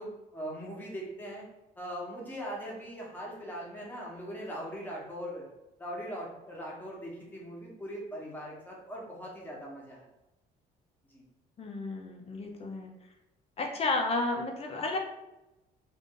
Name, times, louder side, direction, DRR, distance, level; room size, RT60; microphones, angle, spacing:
voice 1, 0.0-1.4 1.8-5.5 5.8-10.1 11.1-11.2, equal, 10° left, -3 dB, 1.0 m, -40 dB
voice 2, 11.6-12.9 13.6-15.0, left 2 dB, 35° left, 3 dB, 0.6 m, -32 dB
2.5 x 2.5 x 3.7 m, 0.95 s
cardioid pair, 110°, 17 cm